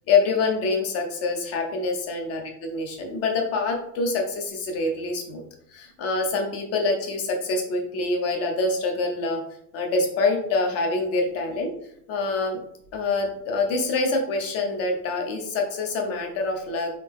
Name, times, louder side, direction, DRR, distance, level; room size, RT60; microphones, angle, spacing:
voice 1, 0.1-5.4 5.7-9.4 9.7-11.7 12.1-12.6 12.9-16.9, left 3 dB, 30° left, 3 dB, 0.9 m, -25 dB
4.3 x 2.9 x 3.6 m, 0.72 s
hypercardioid pair, 125°, 48 cm